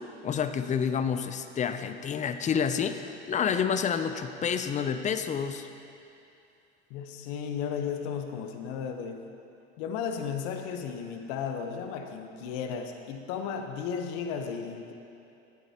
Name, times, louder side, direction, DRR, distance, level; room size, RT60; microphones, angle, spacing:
voice 1, 0.2-5.7, left 7 dB, 20° left, 10 dB, 0.5 m, -29 dB
voice 2, 6.9-9.3 9.8-14.9, left 7 dB, 65° left, 5 dB, 1.0 m, -34 dB
15.0 x 9.1 x 2.9 m, 2.7 s
supercardioid pair, 105°, 34 cm